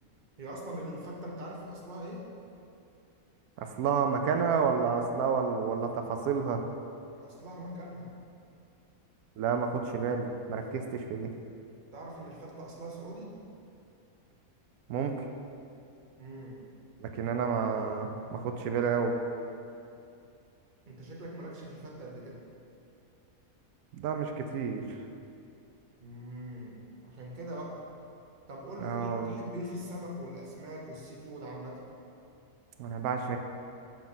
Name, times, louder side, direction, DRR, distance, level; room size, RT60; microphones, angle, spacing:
voice 1, 0.4-2.3 7.2-8.1 11.9-13.3 16.2-16.6 20.9-22.4 26.0-27.8 28.5-31.8, equal, 35° right, -2 dB, 1.0 m, -42 dB
voice 2, 3.6-6.6 9.4-11.3 14.9-15.1 17.0-19.1 23.9-24.8 28.8-29.3 32.8-33.4, right 6 dB, 90° right, 5 dB, 1.1 m, -30 dB
7.2 x 5.9 x 3.8 m, 2.6 s
omnidirectional pair, 1.5 m